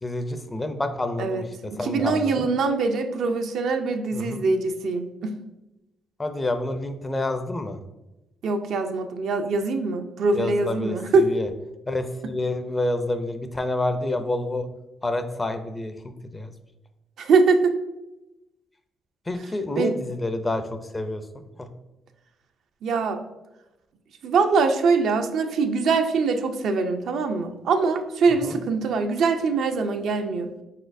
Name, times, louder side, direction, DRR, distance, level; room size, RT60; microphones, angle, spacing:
voice 1, 0.0-2.5 4.1-4.4 6.2-7.8 10.3-11.5 11.9-14.7 15.0-16.5 19.3-20.6 20.9-21.2 21.6-21.7 28.4-28.5, left 2 dB, 20° left, 8 dB, 0.5 m, -28 dB
voice 2, 1.7-5.4 8.4-11.3 17.2-17.8 19.8-20.0 22.8-23.2 24.2-30.5, right 4 dB, 70° right, 6 dB, 0.5 m, -23 dB
4.5 x 4.1 x 2.6 m, 0.97 s
cardioid pair, 90°, 0 cm